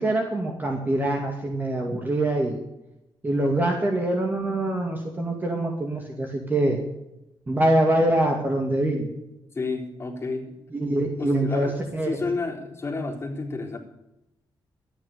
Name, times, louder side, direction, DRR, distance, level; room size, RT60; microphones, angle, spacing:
voice 1, 0.0-2.6 3.2-6.8 7.5-9.1 10.7-12.2, right 1 dB, 20° right, 2 dB, 2.4 m, -24 dB
voice 2, 9.5-10.6 11.2-13.8, left 3 dB, 30° left, 0 dB, 3.7 m, -31 dB
13.5 x 9.7 x 8.4 m, 0.88 s
cardioid pair, 130°, 9 cm